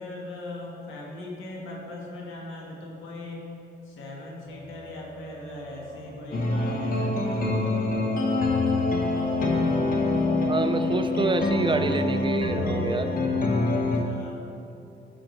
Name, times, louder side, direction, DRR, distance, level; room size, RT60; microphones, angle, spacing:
voice 1, 0.0-3.4 3.8-7.6 13.7-14.4, left 2 dB, 85° left, -2 dB, 1.6 m, -39 dB
sound 1, 4.5-13.7, equal, 45° right, 1.5 m, -44 dB
sound 2, 6.3-14.0, left 2 dB, 45° left, 1.1 m, -25 dB
voice 2, 10.5-13.1, right 3 dB, 25° right, 8 dB, 0.4 m, -27 dB
11.5 x 6.0 x 3.2 m, 2.8 s
cardioid pair, 90°, 20 cm